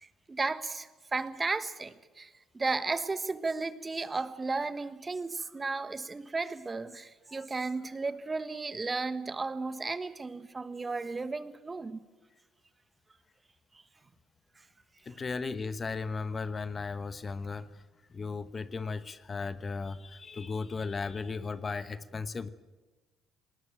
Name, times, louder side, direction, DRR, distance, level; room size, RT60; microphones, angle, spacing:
voice 1, 0.0-12.0, right 3 dB, 25° right, 1.4 m, -34 dB
voice 2, 15.0-17.8 18.1-22.5, left 4 dB, 35° left, 1.1 m, -36 dB
19.5 x 19.0 x 9.0 m
hypercardioid pair, 55°, 0 cm